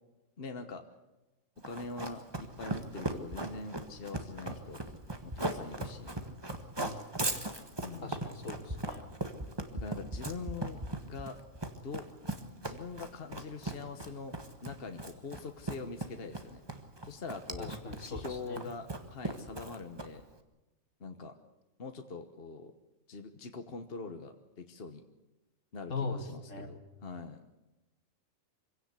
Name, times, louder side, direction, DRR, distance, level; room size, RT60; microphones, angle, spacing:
voice 1, 0.4-0.8 1.6-4.8 5.2-6.1 7.8-8.2 9.7-11.4 11.8-12.1 12.6-16.6 17.0-17.7 18.0-20.2 21.0-21.3 21.8-22.7 23.1-25.0 25.7-26.7 27.0-27.4, left 4 dB, 50° left, 6 dB, 1.3 m, -43 dB
Run, 1.6-20.3, right 2 dB, 20° right, 1.6 m, -38 dB
voice 2, 8.0-9.1 17.6-18.7 25.9-26.8, left 3 dB, 70° left, 5 dB, 2.6 m, -40 dB
25.0 x 17.0 x 8.3 m, 1.0 s
omnidirectional pair, 1.4 m